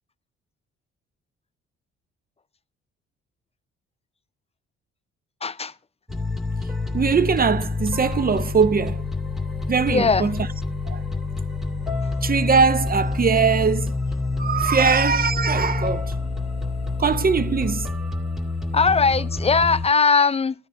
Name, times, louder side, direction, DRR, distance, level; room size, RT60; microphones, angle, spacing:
voice 1, 5.4-5.7 9.9-10.3 18.7-20.5, left 5 dB, 20° left, 0.5 m, -19 dB
sound 1, 6.1-19.9, left 3 dB, ahead, 2.2 m, -27 dB
voice 2, 6.9-9.0 9.7-10.5 10.9-11.0 12.2-13.9 14.4-16.1 17.0-17.9, right 5 dB, 30° right, 0.7 m, -21 dB
14.5 x 9.6 x 2.6 m
hypercardioid pair, 50°, 31 cm